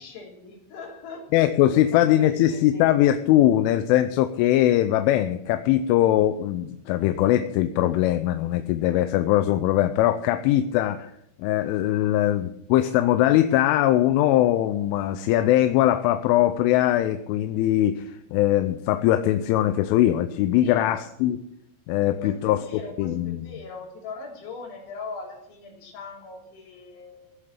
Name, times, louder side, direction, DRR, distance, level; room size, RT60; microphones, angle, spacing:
voice 1, 0.0-1.3 1.6-2.9 20.6-20.8 22.2-27.4, left 4 dB, 70° left, -1 dB, 5.8 m, -40 dB
voice 2, 1.3-11.1 11.4-21.4 21.9-22.6 23.0-23.4, left 13 dB, 85° left, 10 dB, 3.1 m, -21 dB
16.5 x 7.8 x 8.7 m, 0.78 s
omnidirectional pair, 5.7 m